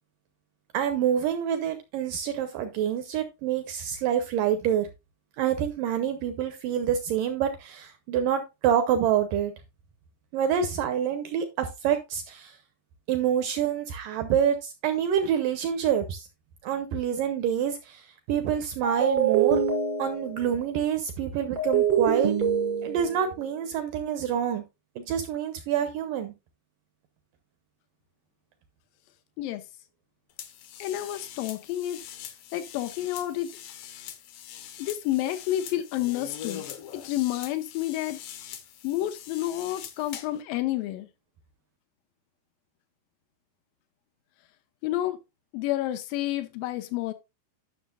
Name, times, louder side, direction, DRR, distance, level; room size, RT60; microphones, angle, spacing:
voice 1, 0.7-4.9 5.4-9.5 10.3-12.6 13.1-16.3 16.6-19.6 20.0-22.3 22.8-24.6 25.0-26.3, right 9 dB, 80° right, 2.0 m, -27 dB
sound 1, 18.8-20.5 21.5-23.2, right 7 dB, 35° right, 0.6 m, -25 dB
sound 2, 30.4-40.4, left 10 dB, 70° left, 2.3 m, -43 dB
voice 2, 30.8-32.0 32.5-33.5 34.8-36.6 36.9-38.2 38.8-41.1 44.8-45.2 45.5-47.1, left 14 dB, 90° left, 2.0 m, -29 dB
11.5 x 6.2 x 2.4 m
omnidirectional pair, 4.7 m